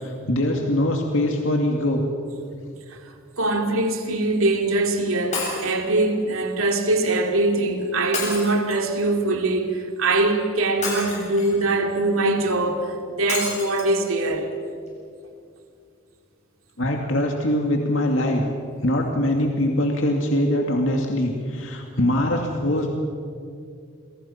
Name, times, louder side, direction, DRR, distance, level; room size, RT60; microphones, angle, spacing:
voice 1, 0.0-2.0 16.8-18.4 18.8-22.9, left 1 dB, 70° left, 2.3 m, -22 dB
voice 2, 3.4-14.5, right 2 dB, 85° right, 2.7 m, -22 dB
Shatter, 5.3-5.8 8.1-9.0 10.8-11.6 13.3-13.9 14.5-14.6 14.9-15.0, left 3 dB, 35° left, 7.5 m, -30 dB
29.0 x 23.5 x 5.8 m
head